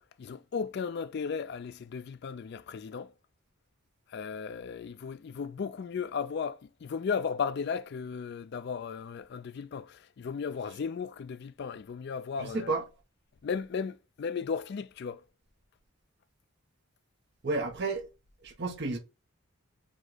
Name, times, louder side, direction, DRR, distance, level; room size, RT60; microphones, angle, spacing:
voice 1, 0.0-3.1 4.1-12.7 13.4-15.2, left 6 dB, 50° left, 0.3 m, -35 dB
voice 2, 12.4-12.8 17.4-18.1 18.4-19.0, right 3 dB, 50° right, 0.8 m, -31 dB
5.2 x 2.1 x 3.8 m
head